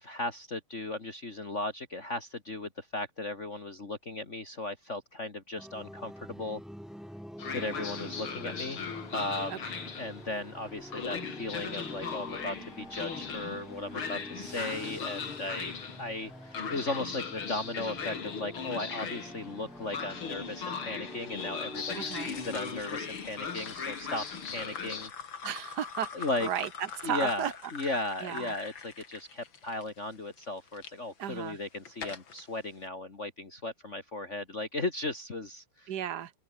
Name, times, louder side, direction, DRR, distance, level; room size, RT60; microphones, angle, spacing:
voice 1, 0.0-6.6 7.5-8.8 9.1-9.7 10.0-25.1 26.1-26.5 27.0-35.9, left 2 dB, 35° left, 2.8 m, -36 dB
sound 1, 5.6-22.8, equal, ahead, 4.3 m, -47 dB
Train, 7.4-25.1, left 6 dB, 80° left, 3.6 m, -39 dB
sound 2, 21.7-30.9 31.5-32.4, left 6 dB, 65° left, 3.1 m, -44 dB
voice 2, 21.9-22.3 25.4-26.7 27.0-27.5 28.2-28.5 31.2-31.6 35.9-36.3, right 10 dB, 55° right, 1.7 m, -34 dB
omnidirectional pair, 2.3 m